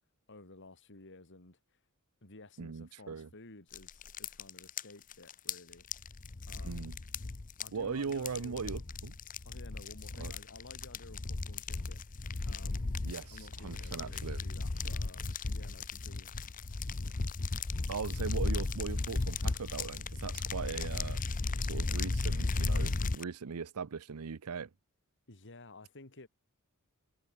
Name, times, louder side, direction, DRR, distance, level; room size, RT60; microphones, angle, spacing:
voice 1, 0.3-1.6 2.2-5.9 6.5-6.9 7.6-8.6 9.4-12.0 12.5-12.9 13.3-16.7 25.3-26.3, left 2 dB, 55° left, 3.0 m, -54 dB
voice 2, 2.6-3.3 6.6-7.0 7.7-9.1 10.2-10.3 13.0-14.4 14.8-14.9 17.8-21.2 21.6-24.7, right 5 dB, 85° right, 0.6 m, -39 dB
sound 1, 3.7-23.2, left 3 dB, 40° left, 0.8 m, -35 dB
head